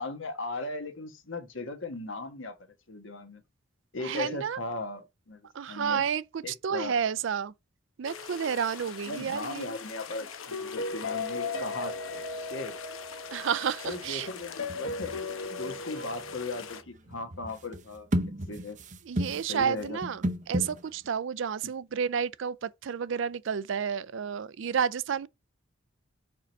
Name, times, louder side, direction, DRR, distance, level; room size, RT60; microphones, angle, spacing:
voice 1, 0.0-2.6 2.9-3.4 3.9-5.4 5.7-6.0 6.4-7.0 9.0-10.3 10.6-12.8 13.8-18.1 18.5-18.8 19.5-20.0, left 3 dB, 70° left, 1.3 m, -37 dB
voice 2, 4.0-4.6 5.5-7.5 8.0-9.7 13.3-14.3 19.0-25.3, right 7 dB, 70° right, 0.4 m, -31 dB
sound 1, 8.0-16.8, left 4 dB, 85° left, 0.9 m, -37 dB
sound 2, 11.1-11.2 11.4-11.8 13.8-21.1, equal, 35° right, 0.7 m, -35 dB
5.0 x 4.6 x 5.2 m
head